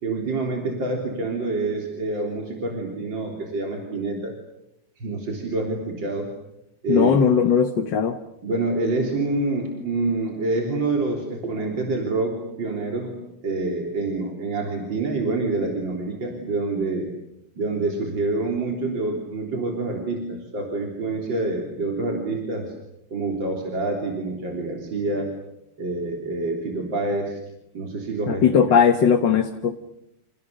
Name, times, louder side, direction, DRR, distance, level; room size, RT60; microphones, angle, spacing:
voice 1, 0.0-4.4 5.0-6.3 6.8-7.2 8.4-17.1 17.6-22.7 23.1-25.4 25.8-27.4 27.7-28.6, right 3 dB, 80° right, 1 dB, 4.2 m, -27 dB
voice 2, 6.9-8.2 28.3-29.8, left 7 dB, 75° left, 7 dB, 2.0 m, -18 dB
29.5 x 29.5 x 6.7 m, 0.81 s
omnidirectional pair, 2.0 m